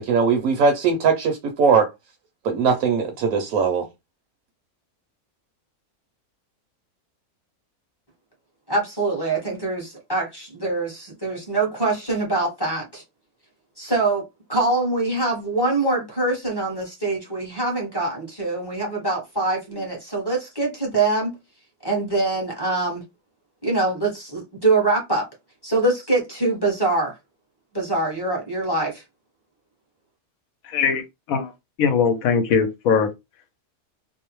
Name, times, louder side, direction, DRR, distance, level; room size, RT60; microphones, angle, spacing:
voice 1, 0.0-1.9 2.4-3.9, right 5 dB, 75° right, 1.0 m, -20 dB
voice 2, 8.7-13.0 13.8-14.2 14.5-21.3 21.8-23.0 23.6-25.2 25.6-27.2 27.7-29.0, right 2 dB, 20° left, 0.8 m, -24 dB
voice 3, 30.6-31.0 31.3-31.5 31.8-33.1, left 6 dB, 75° left, 1.0 m, -20 dB
2.7 x 2.0 x 3.0 m
omnidirectional pair, 1.6 m